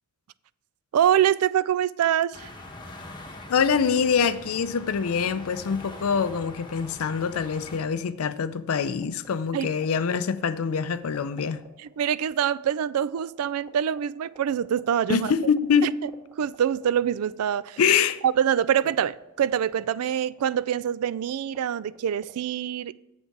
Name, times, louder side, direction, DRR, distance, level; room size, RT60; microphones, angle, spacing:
voice 1, 0.9-2.5 9.5-9.7 11.8-15.3 15.8-16.1 16.4-17.8 18.2-22.9, right 9 dB, 85° right, 0.3 m, -25 dB
sound 1, 2.3-7.8, left 2 dB, 20° left, 1.0 m, -43 dB
voice 2, 3.5-11.6 15.1-15.9 17.8-18.2, left 6 dB, 75° left, 0.4 m, -24 dB
sound 2, 8.9-22.3, right 2 dB, 15° right, 2.0 m, -48 dB
8.0 x 7.5 x 4.6 m
head